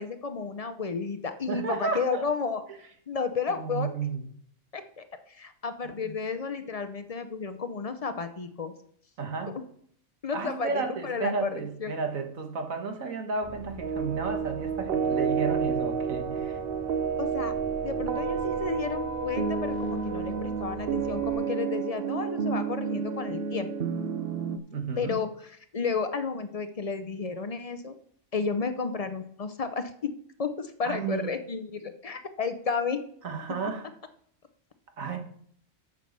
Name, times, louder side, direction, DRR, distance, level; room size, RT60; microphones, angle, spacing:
voice 1, 0.0-2.6 3.1-3.9 4.7-8.7 10.2-11.5 11.8-11.9 17.2-17.5 17.8-23.7 25.0-25.3 25.7-27.9 28.3-30.1 30.4-33.0, left 5 dB, 45° left, 9 dB, 0.5 m, -32 dB
voice 2, 1.5-2.2 3.5-4.2 5.8-6.1 9.2-9.5 10.3-16.6 24.7-25.2 30.8-31.3 33.2-33.9 35.0-35.2, right 4 dB, 70° right, 5 dB, 1.8 m, -32 dB
sound 1, 13.4-21.3, left 1 dB, 35° right, 2.4 m, -44 dB
sound 2, 13.8-24.6, right 6 dB, 50° right, 0.8 m, -30 dB
8.3 x 5.7 x 6.6 m, 0.63 s
omnidirectional pair, 1.5 m